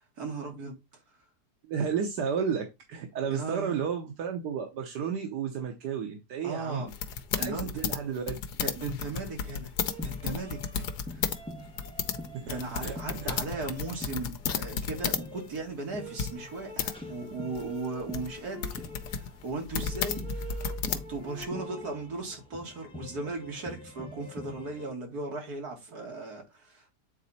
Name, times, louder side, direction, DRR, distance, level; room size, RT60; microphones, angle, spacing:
voice 1, 0.2-0.8 3.3-3.8 6.4-6.9 7.4-7.7 8.6-9.7 10.0-10.8 11.1-11.2 12.3-18.8 19.1-26.9, right 3 dB, 70° right, 2.6 m, -37 dB
voice 2, 1.6-6.8 7.4-8.4 12.4-13.4, right 7 dB, 85° right, 1.5 m, -32 dB
sound 1, 6.9-11.4 11.7-15.3 15.6-15.7 16.2-16.9 17.6-21.5, left 7 dB, 80° left, 1.4 m, -33 dB
sound 2, 9.8-24.9, equal, 5° left, 1.5 m, -45 dB
8.2 x 4.1 x 4.1 m
omnidirectional pair, 1.7 m